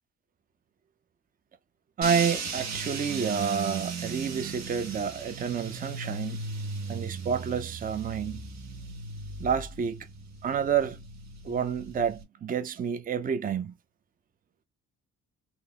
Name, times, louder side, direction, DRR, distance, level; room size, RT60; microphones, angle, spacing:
voice 1, 2.0-6.4 6.9-8.5 9.4-10.1 10.4-11.0 11.4-13.7, right 7 dB, 30° right, 0.5 m, -29 dB
sound 1, 2.0-12.2, right 4 dB, 70° right, 1.3 m, -37 dB
3.8 x 3.0 x 2.4 m
cardioid pair, 120°, 30 cm